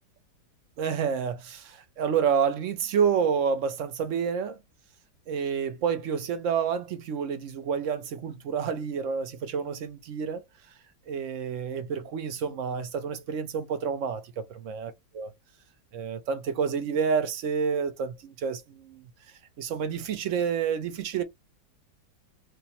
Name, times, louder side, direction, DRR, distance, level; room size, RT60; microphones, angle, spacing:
voice 1, 0.8-4.6 5.3-10.4 11.1-15.3 15.9-19.0 19.6-21.2, right 6 dB, 65° right, 0.7 m, -29 dB
4.8 x 2.1 x 2.8 m
omnidirectional pair, 1.9 m